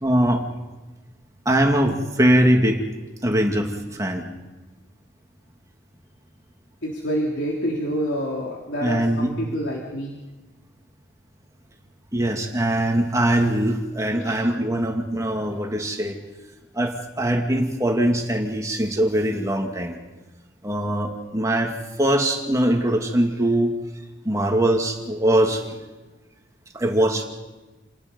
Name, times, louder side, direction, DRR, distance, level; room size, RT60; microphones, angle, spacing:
voice 1, 0.0-0.4 1.5-2.8 3.2-4.2 8.8-9.3 12.1-16.2 16.7-20.0 20.6-23.7 24.2-25.6 26.7-27.2, right 1 dB, 20° right, 2 dB, 2.4 m, -22 dB
voice 2, 6.8-10.2 14.2-14.4, equal, 85° left, -2 dB, 3.5 m, -27 dB
29.0 x 19.5 x 5.4 m, 1.2 s
head